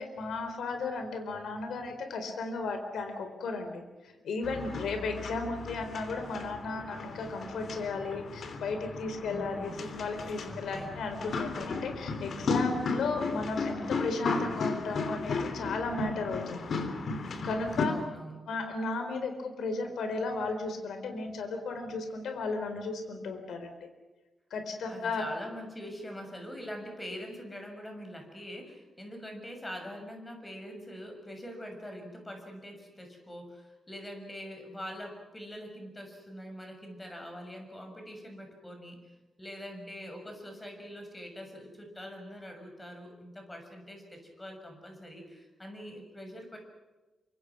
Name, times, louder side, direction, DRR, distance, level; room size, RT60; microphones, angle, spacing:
voice 1, 0.0-16.7 17.4-17.9 18.5-23.9 24.5-25.2, left 3 dB, 85° left, 6 dB, 4.1 m, -35 dB
sound 1, 4.4-17.9, left 4 dB, 55° left, 3.3 m, -35 dB
voice 2, 9.3-9.8 10.4-11.0 17.8-18.4 24.8-39.0 39.4-46.6, equal, 15° left, 4 dB, 6.6 m, -44 dB
28.0 x 25.5 x 6.1 m, 1.1 s
wide cardioid pair, 135°, 0 cm